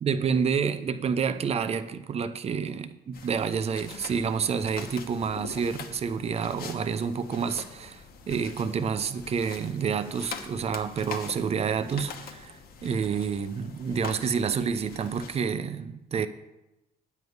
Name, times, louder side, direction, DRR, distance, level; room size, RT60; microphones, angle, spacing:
voice 1, 0.0-16.3, right 6 dB, 35° right, 0.7 m, -29 dB
sound 1, 3.1-15.4, left 5 dB, 65° left, 1.2 m, -44 dB
9.3 x 5.3 x 8.0 m
cardioid pair, 110°, 17 cm